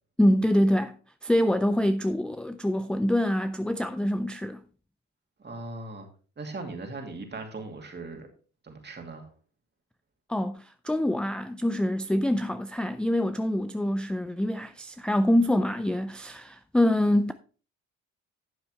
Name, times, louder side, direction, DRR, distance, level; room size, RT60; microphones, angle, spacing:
voice 1, 0.2-1.0 1.2-4.6 10.3-17.3, left 1 dB, 5° left, 0.4 m, -25 dB
voice 2, 5.4-6.1 6.4-8.3 8.6-9.3, right 3 dB, 35° right, 2.6 m, -39 dB
11.5 x 7.2 x 3.2 m
cardioid pair, 90°, 30 cm